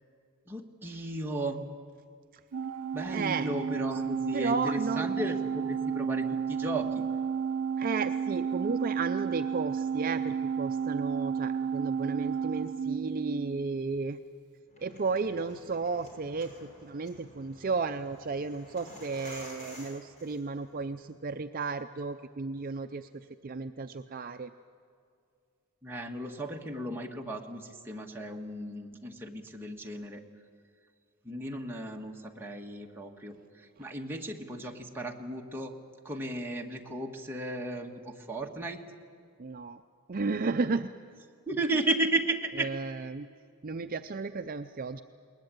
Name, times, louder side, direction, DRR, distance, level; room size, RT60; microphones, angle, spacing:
voice 1, 0.5-1.6 2.9-7.0 25.8-30.2 31.2-33.3 33.8-35.7 36.0-38.8 41.5-42.7, right 1 dB, 10° right, 0 dB, 1.6 m, -34 dB
Organ, 2.5-13.8, right 7 dB, 85° right, 0.6 m, -32 dB
voice 2, 3.1-3.5 4.3-5.1 7.8-14.2 14.8-23.1 23.4-24.5 39.4-39.8 40.1-40.9 42.6-43.3 43.6-45.0, right 4 dB, 40° right, 8 dB, 0.5 m, -33 dB
sound 1, 14.7-20.8, left 1 dB, 35° left, 5.6 m, -51 dB
21.5 x 20.0 x 9.0 m, 2.2 s
head